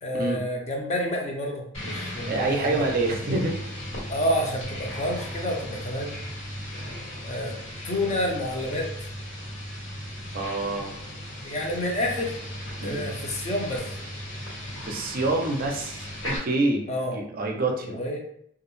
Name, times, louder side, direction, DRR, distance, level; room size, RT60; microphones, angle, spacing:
voice 1, 0.0-2.9 4.1-6.2 7.2-7.6 7.8-9.1 11.4-12.4 12.8-13.9 16.9-17.2 17.8-18.2, left 1 dB, 35° left, 0 dB, 0.5 m, -29 dB
sound 1, 1.7-16.4, equal, 80° left, 1.2 m, -36 dB
voice 2, 2.3-3.6 10.3-10.9 12.8-13.0 14.8-18.0, right 2 dB, 50° right, 1 dB, 0.5 m, -27 dB
2.3 x 2.0 x 3.0 m, 0.68 s
head